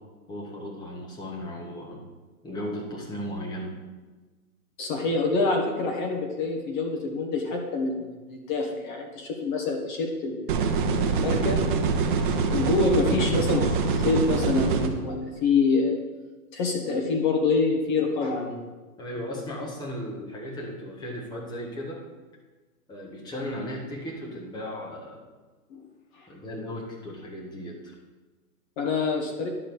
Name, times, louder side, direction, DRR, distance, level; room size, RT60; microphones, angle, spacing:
voice 1, 0.3-2.0 2.4-3.8 19.0-22.0 22.9-25.2 26.3-27.8, equal, 10° left, -2 dB, 1.5 m, -36 dB
voice 2, 4.8-10.7 11.0-11.6 12.5-15.9 16.5-18.6 25.7-25.8 28.8-29.5, left 3 dB, 30° left, 2 dB, 1.4 m, -26 dB
sound 1, 10.5-14.9, right 4 dB, 35° right, 1.0 m, -24 dB
11.5 x 4.3 x 6.9 m, 1.2 s
hypercardioid pair, 150°, 44 cm